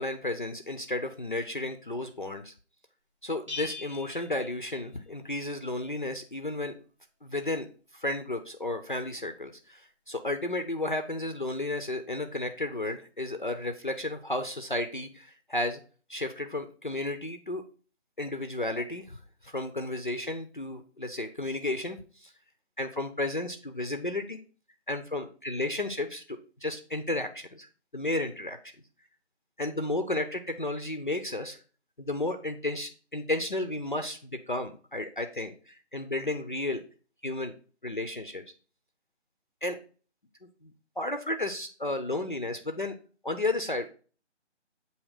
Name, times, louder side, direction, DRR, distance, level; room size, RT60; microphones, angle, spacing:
voice 1, 0.0-2.5 3.2-6.7 7.2-7.7 7.9-15.8 16.1-17.6 18.2-22.3 22.8-24.4 24.9-27.7 27.9-28.6 29.6-31.6 32.0-36.8 37.2-37.5 37.8-38.4 39.6-39.8 40.6-43.0 43.2-43.9, left 2 dB, 45° left, 7 dB, 0.5 m, -33 dB
Bell, 3.5-5.3, left 4 dB, 25° right, 0.8 m, -42 dB
7.5 x 2.8 x 4.7 m, 0.38 s
figure-of-eight pair, 170°, 36 cm